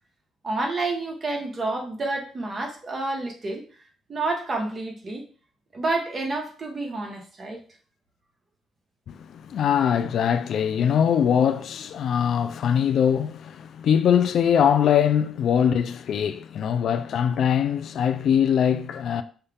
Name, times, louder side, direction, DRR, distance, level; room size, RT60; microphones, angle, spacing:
voice 1, 0.4-3.6 4.1-5.3 5.7-7.6, right 2 dB, 35° right, 1.2 m, -29 dB
voice 2, 9.1-19.2, left 8 dB, 65° left, 0.3 m, -22 dB
5.5 x 2.3 x 3.4 m
cardioid pair, 90°, 0 cm